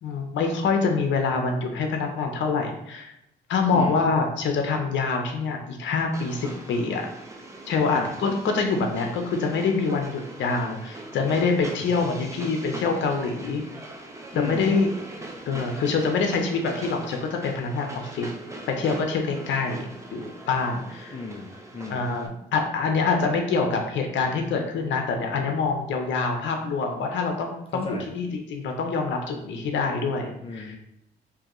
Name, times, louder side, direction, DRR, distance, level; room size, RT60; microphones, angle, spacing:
voice 1, 0.0-3.1 3.5-7.1 7.7-13.6 14.3-14.9 15.5-18.3 18.8-21.1 21.9-30.8, left 4 dB, 70° left, 3 dB, 0.7 m, -25 dB
voice 2, 3.7-4.0 7.9-8.1 14.3-14.7 21.1-22.1 27.7-28.1 30.4-30.8, left 4 dB, 30° left, 1 dB, 0.5 m, -35 dB
Train, 6.1-22.3, right 1 dB, 15° right, 0.7 m, -41 dB
4.7 x 2.7 x 3.0 m, 0.83 s
cardioid pair, 90°, 20 cm